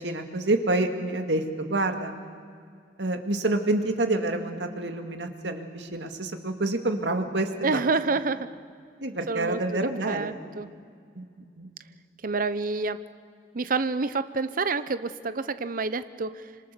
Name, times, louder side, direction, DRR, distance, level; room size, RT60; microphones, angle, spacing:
voice 1, 0.0-2.1 3.0-7.9 9.0-10.3 11.2-11.3 11.6-11.7, right 2 dB, 80° right, 6 dB, 2.1 m, -28 dB
voice 2, 7.6-8.5 9.3-10.7 12.2-13.0 13.5-16.5, right 3 dB, 50° right, 13 dB, 0.8 m, -28 dB
26.0 x 26.0 x 6.9 m, 2.1 s
head